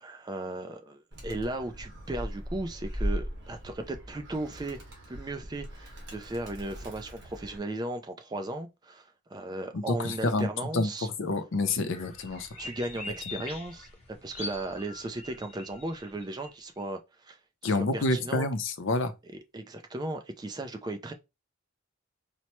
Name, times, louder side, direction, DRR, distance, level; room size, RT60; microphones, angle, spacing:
voice 1, 0.0-4.8 5.1-11.1 12.6-13.9 14.2-17.4 17.6-18.5 19.5-21.1, right 2 dB, 20° right, 0.3 m, -36 dB
Animal, 1.1-7.6, equal, 55° right, 1.4 m, -38 dB
voice 2, 9.7-12.5 13.3-13.4 17.6-19.1, left 2 dB, 60° left, 0.5 m, -28 dB
sound 1, 11.9-16.8, left 3 dB, 30° left, 0.7 m, -43 dB
4.3 x 2.1 x 2.9 m
head